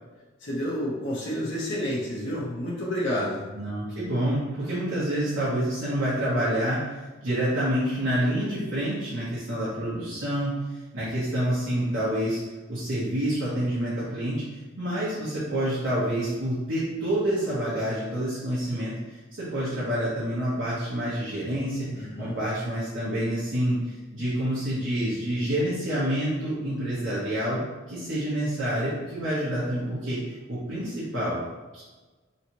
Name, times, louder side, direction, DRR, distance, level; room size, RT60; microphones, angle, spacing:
voice 1, 0.4-3.5 21.9-22.4, equal, 70° left, -7 dB, 0.9 m, -30 dB
voice 2, 3.5-6.8 7.2-12.4 12.7-27.6 27.9-30.2 30.5-31.4 31.7-31.8, right 1 dB, 85° right, -10 dB, 1.0 m, -28 dB
3.2 x 2.9 x 2.8 m, 1.2 s
head